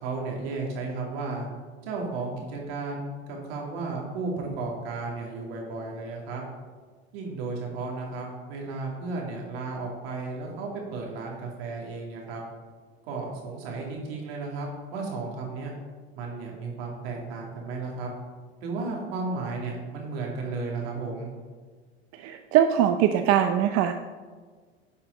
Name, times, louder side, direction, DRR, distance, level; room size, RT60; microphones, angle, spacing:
voice 1, 0.0-1.5 1.8-6.4 7.1-12.4 13.1-15.7 16.1-18.1 18.6-21.3, right 3 dB, 70° right, -1 dB, 2.7 m, -34 dB
voice 2, 22.2-23.9, right 10 dB, 50° right, 7 dB, 0.6 m, -22 dB
10.0 x 5.6 x 4.0 m, 1.5 s
hypercardioid pair, 105°, 32 cm